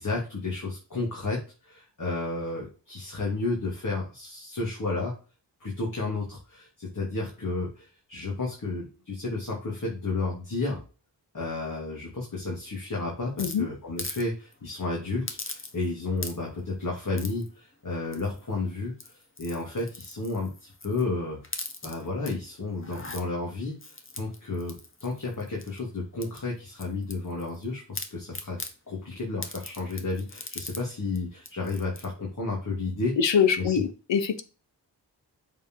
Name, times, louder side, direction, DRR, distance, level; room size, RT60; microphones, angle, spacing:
voice 1, 0.0-5.1 5.6-10.8 11.3-21.4 21.8-28.6 28.9-33.1 33.6-33.7, left 3 dB, 45° left, 3.0 m, -32 dB
sound 1, 13.4-14.2 14.5-14.7 15.3-15.9 16.2-16.6 17.2-17.5 18.1-18.5 18.9-21.1 21.4-22.3 22.8-23.2 23.8-25.8 26.2-27.6 27.9-28.7 29.4-30.8 31.2-31.3 31.4-32.1, left 2 dB, 30° left, 1.4 m, -40 dB
voice 2, 33.2-34.4, left 7 dB, 80° left, 1.1 m, -24 dB
7.9 x 4.6 x 4.8 m
wide cardioid pair, 85°, 43 cm